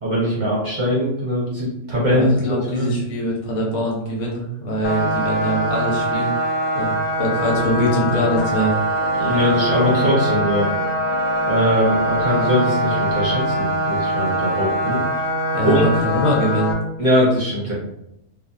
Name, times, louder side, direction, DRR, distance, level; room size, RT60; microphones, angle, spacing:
voice 1, 0.0-2.3 2.7-2.9 9.2-10.7 11.4-15.0 15.6-15.9 17.0-17.7, equal, 45° right, -6 dB, 0.8 m, -21 dB
voice 2, 2.1-6.9 7.2-8.7 15.5-16.7, right 1 dB, 75° left, -2 dB, 1.1 m, -23 dB
sound 1, 4.8-16.7, equal, 60° left, 0.6 m, -22 dB
sound 2, 8.9-14.0, right 1 dB, ahead, 0.7 m, -38 dB
2.6 x 2.3 x 2.3 m, 0.85 s
omnidirectional pair, 1.3 m